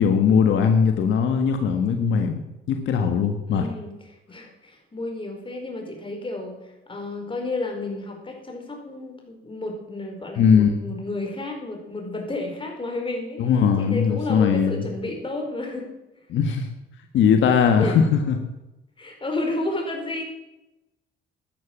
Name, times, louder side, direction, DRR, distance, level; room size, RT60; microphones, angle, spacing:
voice 1, 0.0-2.4 2.7-3.7 10.4-10.7 13.4-14.8 16.3-16.7 17.1-18.4, left 6 dB, 75° left, 6 dB, 1.5 m, -19 dB
voice 2, 3.4-13.5 13.8-15.9 17.8-18.0 19.0-20.2, left 2 dB, 25° left, 2 dB, 4.7 m, -31 dB
12.5 x 11.0 x 7.4 m, 0.97 s
cardioid pair, 90°, 20 cm